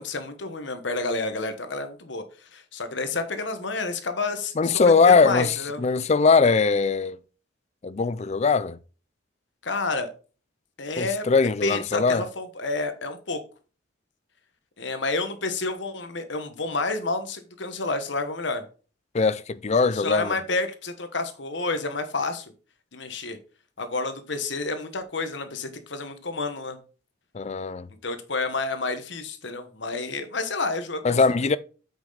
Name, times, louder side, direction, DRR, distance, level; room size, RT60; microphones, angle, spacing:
voice 1, 0.0-5.8 9.6-10.1 10.8-11.2 11.6-13.4 14.8-18.6 19.9-22.5 22.9-23.4 23.8-26.8 28.0-31.2, left 3 dB, 65° left, 1.2 m, -30 dB
voice 2, 4.6-7.2 7.8-8.8 11.0-12.2 19.1-20.4 27.3-27.9 31.0-31.6, left 4 dB, 35° left, 0.4 m, -21 dB
8.4 x 6.1 x 4.0 m
head